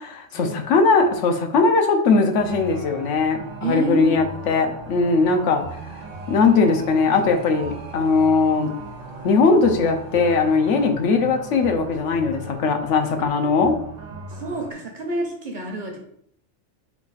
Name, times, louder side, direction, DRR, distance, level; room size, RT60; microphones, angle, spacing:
voice 1, 0.0-5.6 6.3-8.7 9.2-13.8, left 4 dB, 80° left, 5 dB, 1.0 m, -19 dB
sound 1, 2.4-14.7, right 2 dB, 85° right, 1.1 m, -38 dB
voice 2, 3.6-4.2 14.1-16.0, right 2 dB, 50° right, 2 dB, 0.8 m, -29 dB
4.6 x 2.4 x 4.0 m, 0.66 s
omnidirectional pair, 1.2 m